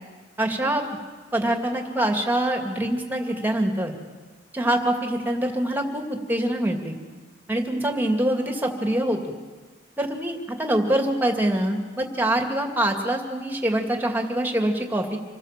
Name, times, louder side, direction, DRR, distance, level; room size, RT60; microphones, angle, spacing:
voice 1, 0.4-0.8 1.3-4.0 4.5-6.9 7.5-9.2 10.0-15.2, right 1 dB, 10° right, 3 dB, 2.4 m, -24 dB
27.0 x 19.5 x 7.6 m, 1.4 s
head